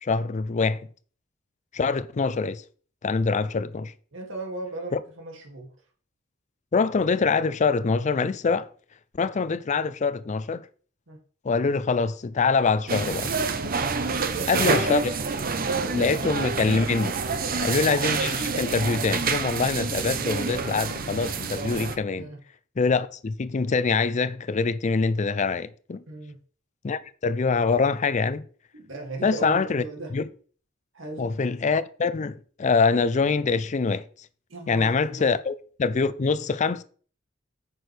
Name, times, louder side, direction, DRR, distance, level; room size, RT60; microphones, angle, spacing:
voice 1, 0.0-0.9 1.7-2.6 3.0-3.9 4.9-5.0 6.7-8.7 9.2-10.7 11.4-13.3 14.5-15.0 15.9-17.1 17.6-22.3 22.8-26.0 26.8-28.4 29.2-29.8 30.1-30.3 31.2-34.0 34.7-36.8, left 4 dB, 35° left, 0.4 m, -24 dB
voice 2, 4.1-5.7 11.1-11.2 14.2-15.0 15.3-15.4 15.6-16.3 17.4-17.9 22.1-22.4 26.1-26.4 28.7-30.1 30.9-31.3 34.5-35.3, right 3 dB, 70° right, 2.4 m, -36 dB
sound 1, 12.9-22.0, right 5 dB, 45° right, 0.7 m, -28 dB
9.2 x 6.1 x 3.3 m
head